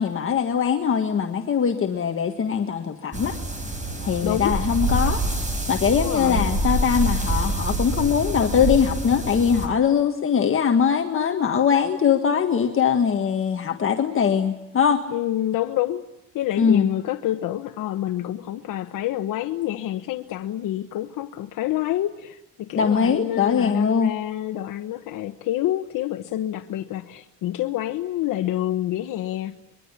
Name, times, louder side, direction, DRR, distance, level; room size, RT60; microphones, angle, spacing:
voice 1, 0.0-3.3 4.0-5.3 5.7-15.0 16.6-16.9 22.7-24.1, left 7 dB, 40° left, 4 dB, 1.6 m, -21 dB
sound 1, 3.1-9.7, right 1 dB, 25° right, 5.1 m, -26 dB
voice 2, 4.2-4.6 5.9-6.5 15.1-16.0 16.3-29.5, left 13 dB, 85° left, 7 dB, 1.1 m, -27 dB
24.5 x 22.5 x 9.9 m, 0.87 s
cardioid pair, 145°, 32 cm